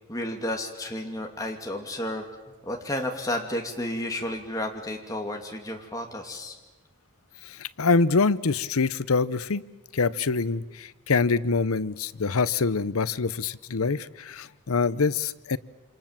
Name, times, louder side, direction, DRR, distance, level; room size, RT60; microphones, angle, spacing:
voice 1, 0.1-2.3 2.6-6.6, left 1 dB, 15° left, 2 dB, 2.6 m, -32 dB
voice 2, 7.4-9.6 9.9-15.6, left 4 dB, 85° left, 17 dB, 0.8 m, -25 dB
27.5 x 26.5 x 7.5 m, 1.2 s
head